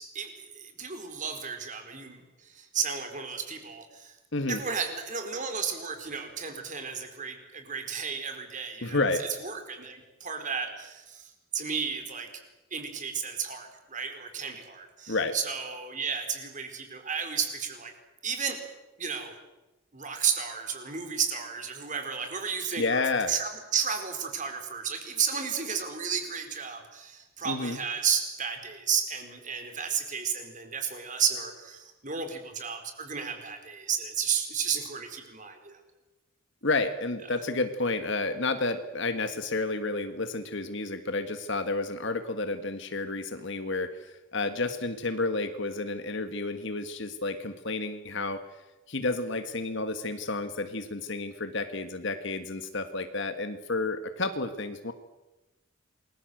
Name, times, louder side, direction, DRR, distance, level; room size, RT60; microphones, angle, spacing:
voice 1, 0.0-4.1 4.5-12.3 12.7-17.9 18.2-18.6 19.0-19.4 19.9-35.8, right 6 dB, 35° right, 6 dB, 4.4 m, -33 dB
voice 2, 8.8-9.2 15.1-15.3 22.8-23.3 27.4-27.8 36.6-48.4 48.9-54.9, left 3 dB, 60° left, 8 dB, 1.7 m, -30 dB
28.5 x 21.5 x 8.0 m, 1.0 s
head